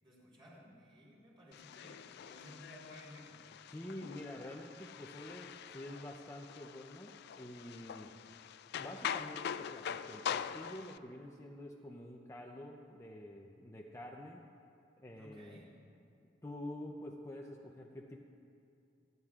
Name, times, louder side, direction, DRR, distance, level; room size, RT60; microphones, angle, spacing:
voice 1, 0.0-3.5 15.2-15.8, equal, 25° right, -4 dB, 3.6 m, -56 dB
sound 1, 1.5-11.0, left 8 dB, 55° left, 0.3 m, -44 dB
voice 2, 3.7-8.1 8.8-14.4 15.0-15.6 16.4-18.2, left 1 dB, 15° left, 0 dB, 0.6 m, -48 dB
29.0 x 10.5 x 2.4 m, 2.5 s
head